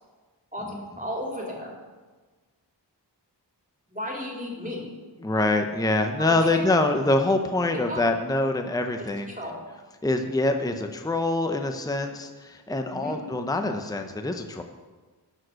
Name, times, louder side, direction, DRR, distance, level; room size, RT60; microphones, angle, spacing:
voice 1, 0.5-1.7 3.9-4.9 6.2-6.6 7.7-8.1 9.2-9.6 12.9-13.2, left 1 dB, 20° right, -2 dB, 2.8 m, -34 dB
voice 2, 5.2-9.3 10.0-14.6, left 2 dB, 10° left, 5 dB, 0.7 m, -25 dB
12.5 x 4.9 x 6.3 m, 1.3 s
wide cardioid pair, 50°, 43 cm